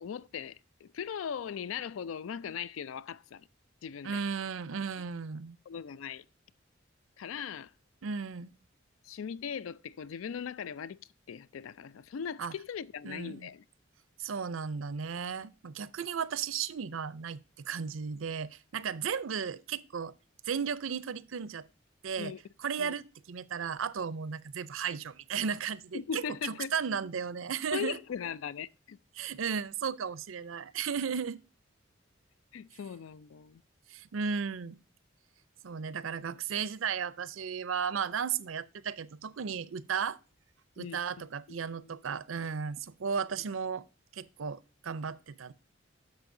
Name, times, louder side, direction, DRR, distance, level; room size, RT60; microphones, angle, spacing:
voice 1, 0.0-3.5 3.8-4.2 5.7-6.2 7.2-7.7 9.0-11.0 11.3-13.6 22.2-22.4 22.8-22.9 25.9-26.7 27.7-29.0 32.5-33.6 40.8-41.0 41.5-41.6 41.8-41.9, left 7 dB, 85° left, 0.4 m, -39 dB
voice 2, 4.0-5.6 8.0-8.5 12.4-12.5 13.0-13.5 14.2-20.1 20.4-21.7 22.0-22.3 22.6-28.0 29.1-31.4 33.9-34.8 35.6-40.2 40.8-43.8 44.1-45.5, right 6 dB, 90° right, 0.5 m, -35 dB
10.5 x 6.8 x 2.6 m
head